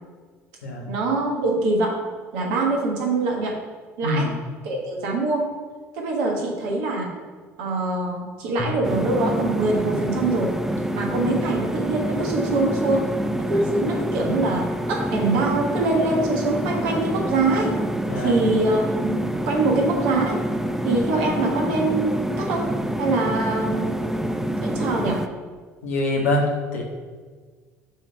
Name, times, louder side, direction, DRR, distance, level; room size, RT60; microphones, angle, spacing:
voice 1, 0.9-2.0 2.3-3.6 4.0-4.3 4.6-5.5 5.9-7.2 7.6-10.6 10.9-13.1 13.5-17.8 18.1-20.4 20.8-22.7 23.0-24.3 24.6-25.2, right 2 dB, 70° right, -1 dB, 1.4 m, -24 dB
voice 2, 4.0-4.3 18.1-18.4 24.7-24.9 25.8-26.4 26.7-26.8, left 1 dB, 85° left, -1 dB, 1.3 m, -24 dB
Drum, 8.6-11.0, left 2 dB, 20° left, 0.9 m, -38 dB
sound 1, 8.8-25.3, right 1 dB, 5° right, 0.5 m, -27 dB
6.3 x 3.3 x 5.5 m, 1.5 s
hypercardioid pair, 60°, 8 cm